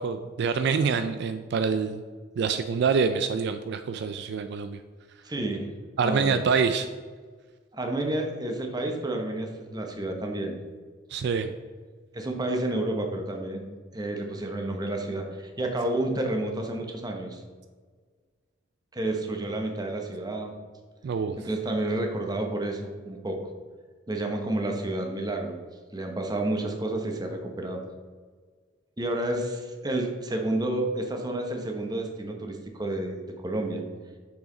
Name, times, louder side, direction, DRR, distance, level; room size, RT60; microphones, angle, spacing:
voice 1, 0.0-2.0 2.4-4.8 6.0-6.9 11.1-11.5 21.0-21.4, right 5 dB, 60° right, 9 dB, 0.3 m, -26 dB
voice 2, 5.2-5.7 6.0-6.4 7.7-10.6 12.1-13.7 13.9-17.4 18.9-20.5 21.4-23.4 24.1-25.6 25.9-27.8 29.0-33.8, right 1 dB, 20° right, 3 dB, 0.9 m, -30 dB
6.4 x 5.8 x 3.8 m, 1.5 s
head